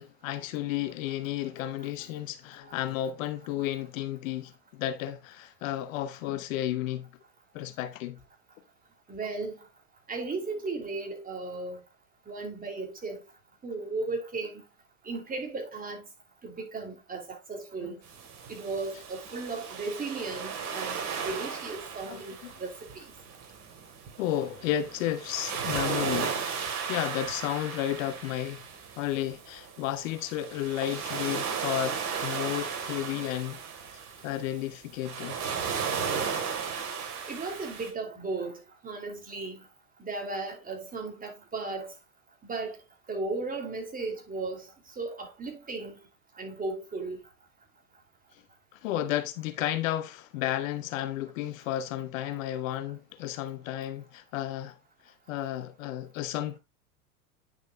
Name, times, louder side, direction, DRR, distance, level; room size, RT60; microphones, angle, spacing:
voice 1, 0.0-7.1 7.5-8.2 17.8-17.9 22.1-22.5 24.2-26.4 26.9-28.6 29.0-33.6 34.2-35.4 48.7-54.8 55.0-56.6, left 12 dB, 60° left, 1.0 m, -32 dB
voice 2, 9.1-9.6 10.1-11.8 12.3-13.2 13.6-14.6 15.0-16.1 16.4-18.0 18.5-23.1 37.2-39.6 40.0-41.9 42.4-42.8 43.1-44.7 45.0-45.9 46.4-47.2, right 3 dB, 20° right, 2.9 m, -36 dB
sound 1, 18.0-37.9, right 6 dB, 35° right, 2.7 m, -35 dB
9.8 x 6.4 x 2.3 m
hypercardioid pair, 100°, 45 cm